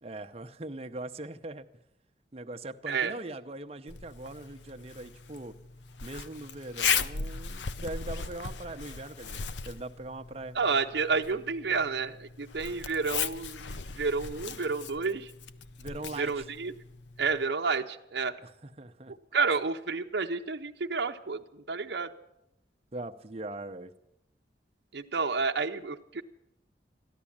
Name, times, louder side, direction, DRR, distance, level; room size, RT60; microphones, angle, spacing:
voice 1, 0.0-1.7 2.3-5.5 6.0-10.6 15.8-16.5 18.4-19.1 22.9-23.9, right 2 dB, 35° right, 7 dB, 0.7 m, -41 dB
Zipper (clothing), 3.9-17.4, left 6 dB, 80° left, 0.6 m, -37 dB
voice 2, 10.5-15.3 16.2-16.7 17.2-18.3 19.3-22.1 24.9-26.2, right 4 dB, 65° right, 3 dB, 0.7 m, -30 dB
14.0 x 11.5 x 8.6 m, 0.84 s
head